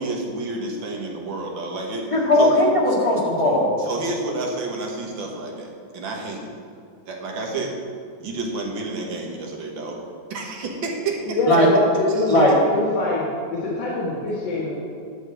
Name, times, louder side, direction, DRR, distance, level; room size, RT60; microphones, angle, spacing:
voice 1, 0.0-2.1 2.4-2.5 3.8-6.5 7.1-7.8 8.2-10.0 10.3-11.4, right 3 dB, 80° right, 1 dB, 2.1 m, -30 dB
voice 2, 2.1-3.7 11.5-11.7 12.3-12.5, left 1 dB, 15° left, -4 dB, 1.8 m, -18 dB
voice 3, 11.3-14.7, left 1 dB, 75° left, -6 dB, 2.2 m, -23 dB
10.5 x 4.4 x 7.6 m, 2.3 s
omnidirectional pair, 2.0 m